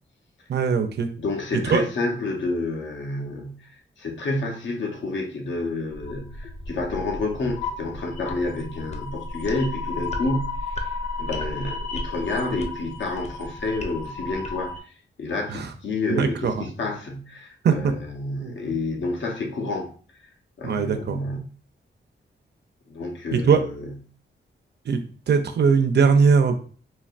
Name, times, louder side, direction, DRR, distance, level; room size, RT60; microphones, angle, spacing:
voice 1, 0.5-1.1 1.7-1.8 15.5-15.7 16.1-16.6 17.6-17.9 18.4-18.5 20.6-21.2 23.3-23.6 24.9-25.0 25.3-26.6, right 5 dB, 60° right, 0.5 m, -20 dB
voice 2, 1.2-3.7 4.0-10.9 11.2-14.7 15.2-19.9 20.6-21.4 22.9-23.9, left 2 dB, 70° left, 0.8 m, -29 dB
sound 1, 5.9-14.8, left 3 dB, 35° left, 0.5 m, -33 dB
4.2 x 2.8 x 2.4 m
wide cardioid pair, 150°, 20 cm